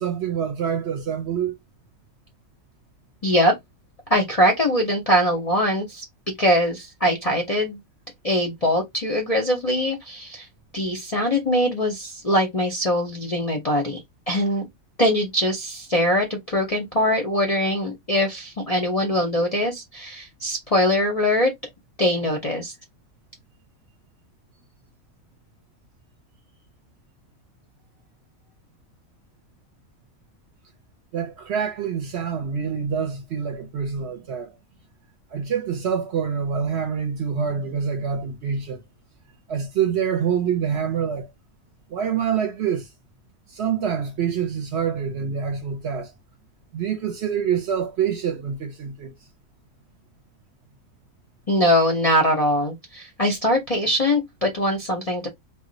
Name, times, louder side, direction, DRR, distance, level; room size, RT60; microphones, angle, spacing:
voice 1, 0.0-1.5 31.1-34.5 35.3-38.8 39.5-41.3 41.9-42.9 43.5-46.1 46.7-49.1, right 7 dB, 60° right, 0.8 m, -26 dB
voice 2, 3.2-3.5 4.1-6.0 6.4-7.8 8.2-10.5 10.7-14.0 14.3-14.7 15.0-21.5 22.0-22.7 51.5-55.3, left 1 dB, 45° left, 0.5 m, -22 dB
2.4 x 2.1 x 3.8 m
omnidirectional pair, 1.5 m